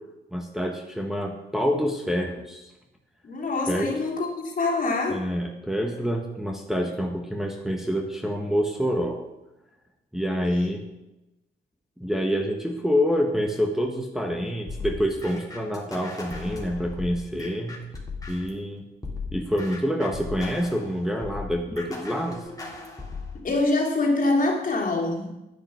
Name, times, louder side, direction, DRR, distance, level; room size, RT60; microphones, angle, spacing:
voice 1, 0.3-2.7 3.7-3.9 5.1-9.2 10.1-10.8 12.0-17.8 18.3-18.8 19.3-22.4, equal, ahead, 1 dB, 1.4 m, -27 dB
voice 2, 3.2-5.2 23.3-25.3, left 2 dB, 45° left, 0 dB, 3.1 m, -25 dB
sound 1, 14.7-18.6 19.0-23.4, left 4 dB, 20° left, 3.2 m, -37 dB
10.0 x 9.6 x 6.4 m, 0.97 s
cardioid pair, 90°, 20 cm